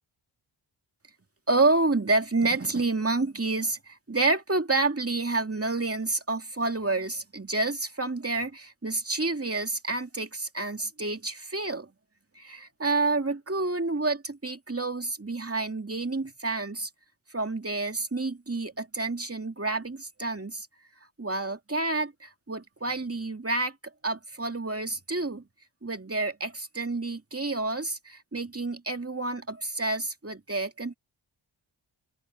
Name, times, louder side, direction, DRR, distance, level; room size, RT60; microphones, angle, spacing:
voice 1, 1.5-11.9 12.3-16.9 17.3-20.7 21.2-23.8 24.0-25.4 25.8-30.9, right 3 dB, 30° right, 2.4 m, -29 dB
open air
cardioid pair, 45°, 50 cm